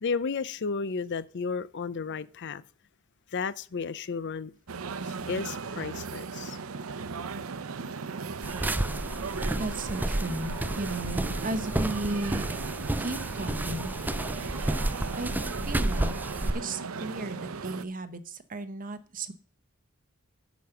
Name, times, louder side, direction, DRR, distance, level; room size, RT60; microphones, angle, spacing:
voice 1, 0.0-2.6 3.3-4.5 5.1-6.6, left 5 dB, 55° left, 0.5 m, -33 dB
sound 1, 4.7-17.8, right 4 dB, 80° right, 0.7 m, -37 dB
sound 2, 8.4-16.5, right 1 dB, 10° right, 0.4 m, -31 dB
voice 2, 9.6-12.4 13.0-13.9 15.2-15.3 15.7-16.1 16.5-19.3, right 2 dB, 40° right, 1.0 m, -34 dB
10.5 x 5.2 x 6.9 m
head